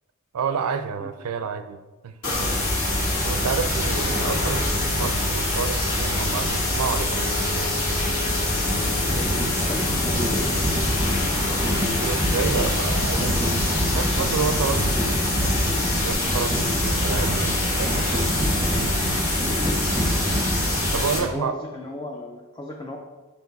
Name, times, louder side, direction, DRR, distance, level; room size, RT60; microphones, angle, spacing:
voice 1, 0.3-1.8 2.0-2.1 3.2-7.9 11.9-13.5 13.9-18.3 20.9-21.6, right 6 dB, 75° right, 10 dB, 0.4 m, -30 dB
sound 1, 2.2-21.2, left 2 dB, 65° left, 1.9 m, -26 dB
sound 2, 2.3-21.0, equal, ahead, 1.0 m, -27 dB
Wind instrument woodwind instrument, 4.0-16.2, left 6 dB, 35° left, 1.7 m, -40 dB
voice 2, 9.1-10.6 19.6-19.8 21.1-23.0, left 1 dB, 20° left, 1 dB, 0.4 m, -35 dB
5.2 x 4.6 x 4.0 m, 1.2 s
head